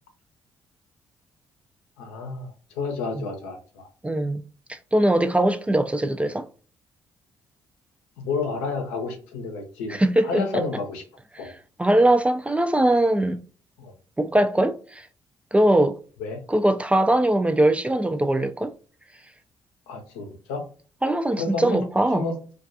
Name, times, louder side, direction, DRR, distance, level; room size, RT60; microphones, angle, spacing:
voice 1, 2.0-3.9 8.2-10.0 10.2-11.0 11.4-11.5 13.8-13.9 16.2-16.4 19.9-20.6 21.4-21.8 22.1-22.4, left 4 dB, 85° left, 0.6 m, -30 dB
voice 2, 4.0-4.4 4.7-6.5 9.9-10.4 11.8-13.4 14.2-15.1 15.5-16.0 16.5-18.7 21.0-22.2, right 1 dB, 10° right, 0.3 m, -21 dB
2.3 x 2.3 x 2.6 m
hypercardioid pair, 50°, 11 cm